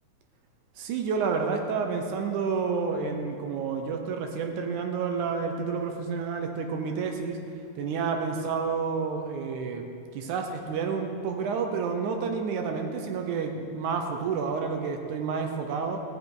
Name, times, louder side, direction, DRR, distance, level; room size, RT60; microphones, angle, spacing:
voice 1, 0.8-7.4 7.8-9.8 10.1-16.0, right 5 dB, 75° right, 4 dB, 2.1 m, -29 dB
14.5 x 9.1 x 4.8 m, 2.5 s
omnidirectional pair, 3.7 m